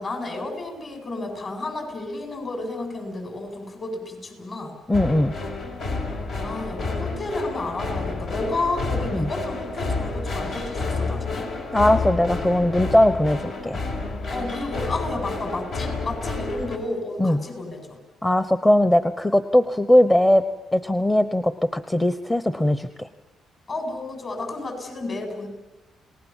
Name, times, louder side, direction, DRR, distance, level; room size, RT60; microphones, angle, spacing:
voice 1, 0.0-4.8 6.4-11.5 14.3-18.0 23.7-25.5, left 2 dB, 45° left, 4 dB, 7.9 m, -31 dB
sound 1, 4.9-16.8, left 3 dB, 70° left, 5.2 m, -30 dB
voice 2, 4.9-5.3 9.1-9.3 11.7-13.8 17.2-17.4 18.2-20.4 20.7-23.1, left 1 dB, 15° left, 11 dB, 1.0 m, -20 dB
29.0 x 19.5 x 7.4 m, 1.0 s
cardioid pair, 90°, 0 cm